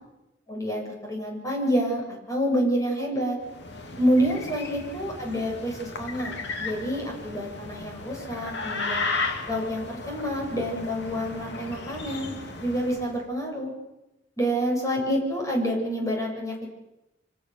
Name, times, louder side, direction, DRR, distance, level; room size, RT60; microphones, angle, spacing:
voice 1, 0.5-2.0 2.3-3.4 4.0-9.1 9.5-12.3 12.6-13.7 14.4-16.7, equal, 20° left, 0 dB, 7.3 m, -28 dB
sound 1, 3.4-13.2, left 3 dB, 65° left, 2.8 m, -35 dB
27.0 x 25.0 x 7.1 m, 0.95 s
head